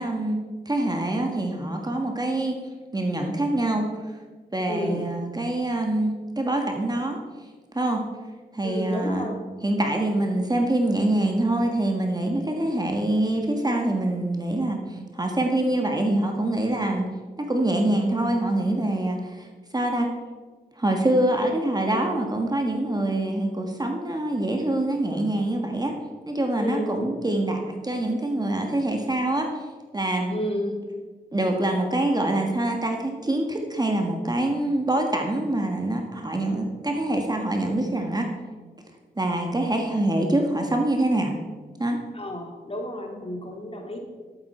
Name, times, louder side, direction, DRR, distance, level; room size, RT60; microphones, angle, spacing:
voice 1, 0.0-2.6 2.9-4.1 4.5-7.2 7.7-8.0 8.5-9.3 9.6-17.1 17.4-20.1 20.8-25.9 26.2-29.5 29.9-30.3 31.3-38.3 39.2-41.3 41.8-42.0, right 1 dB, 20° right, 2 dB, 1.6 m, -25 dB
voice 2, 4.7-5.0 8.6-9.4 26.6-27.1 30.3-30.8 42.1-44.0, equal, 30° left, 1 dB, 2.4 m, -31 dB
12.0 x 8.0 x 4.4 m, 1.4 s
cardioid pair, 55°, 18 cm